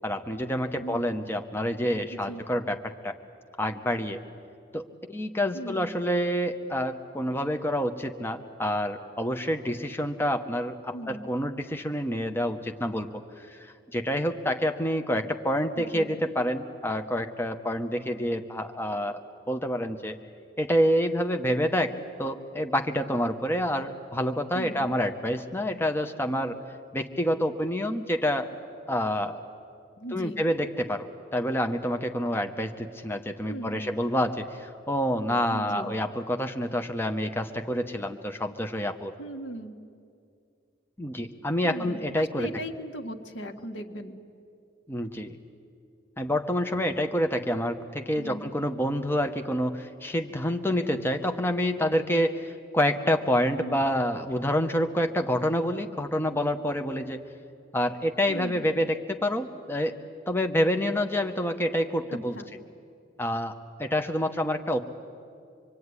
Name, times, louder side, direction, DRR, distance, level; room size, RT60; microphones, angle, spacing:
voice 1, 0.0-3.1 3.6-4.2 4.7-13.1 13.4-19.2 19.5-20.2 20.6-26.6 26.9-28.5 28.9-29.4 30.1-39.1 41.0-42.5 44.9-45.4 46.2-57.2 57.7-60.0 60.3-62.4 63.2-64.9, equal, 10° left, 6 dB, 0.9 m, -28 dB
voice 2, 5.5-5.9 10.9-11.2 15.8-16.1 24.5-24.9 30.0-30.4 33.5-33.9 35.5-35.9 39.2-39.7 41.6-44.2 48.2-48.4 53.6-53.8 58.3-58.7 62.1-62.5, right 1 dB, 80° left, 4 dB, 1.8 m, -38 dB
26.0 x 23.0 x 9.7 m, 2.4 s
head